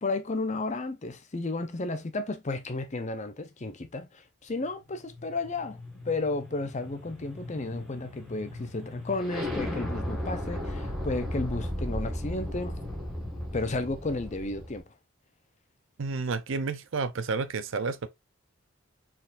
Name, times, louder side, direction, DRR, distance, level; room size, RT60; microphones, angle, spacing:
voice 1, 0.0-5.8 6.1-12.8 13.5-14.8, left 2 dB, 35° left, 0.6 m, -33 dB
sound 1, 4.6-14.8, left 1 dB, ahead, 1.7 m, -36 dB
voice 2, 16.0-18.1, right 4 dB, 65° right, 0.6 m, -30 dB
4.4 x 3.8 x 2.5 m
head